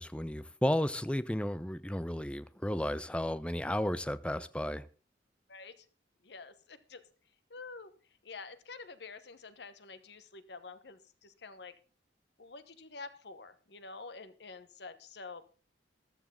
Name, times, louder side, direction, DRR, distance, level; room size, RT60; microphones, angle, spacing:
voice 1, 0.0-4.8, left 1 dB, 5° left, 0.5 m, -33 dB
voice 2, 5.5-5.8 6.2-7.0 7.5-7.9 8.2-11.7 12.4-15.4, left 4 dB, 65° left, 1.1 m, -48 dB
14.5 x 12.0 x 3.7 m
head